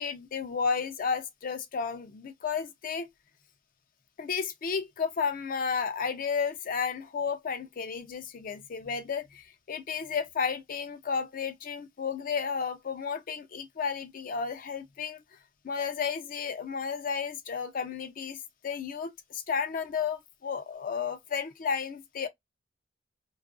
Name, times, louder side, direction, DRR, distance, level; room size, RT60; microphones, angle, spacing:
voice 1, 0.0-3.1 4.2-15.2 15.6-18.4 18.6-22.3, left 6 dB, 45° left, 0.4 m, -32 dB
2.3 x 2.2 x 2.4 m
head